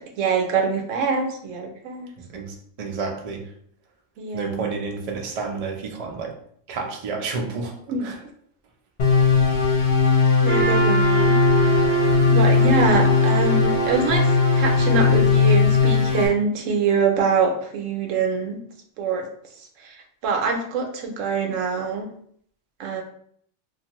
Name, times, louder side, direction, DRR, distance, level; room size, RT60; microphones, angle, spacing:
voice 1, 0.2-2.1 4.2-4.7 7.9-8.0 10.4-11.4 12.3-14.3 14.5-18.6 19.0-19.2 19.8-19.9 20.2-22.1 22.8-23.0, right 4 dB, 85° right, 3 dB, 1.0 m, -24 dB
voice 2, 2.3-3.5 4.3-6.3 6.7-7.7 8.0-8.2, right 4 dB, 60° right, 1 dB, 0.3 m, -30 dB
sound 1, 9.0-16.3, left 5 dB, 55° left, 0.9 m, -18 dB
Trumpet, 10.4-15.5, right 7 dB, 25° left, 0.9 m, -25 dB
2.5 x 2.4 x 2.9 m, 0.63 s
omnidirectional pair, 1.3 m